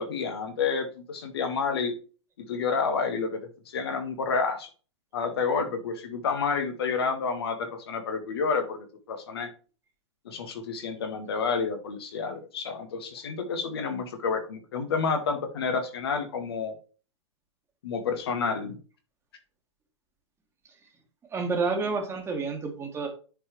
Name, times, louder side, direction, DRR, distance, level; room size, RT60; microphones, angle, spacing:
voice 1, 0.0-1.9 2.4-4.7 5.1-9.5 10.2-16.8 17.8-18.8, left 5 dB, 55° left, 6 dB, 1.7 m, -29 dB
voice 2, 21.3-23.1, right 4 dB, 15° right, 3 dB, 1.9 m, -29 dB
9.9 x 4.7 x 3.2 m, 0.37 s
figure-of-eight pair, 105°, 15 cm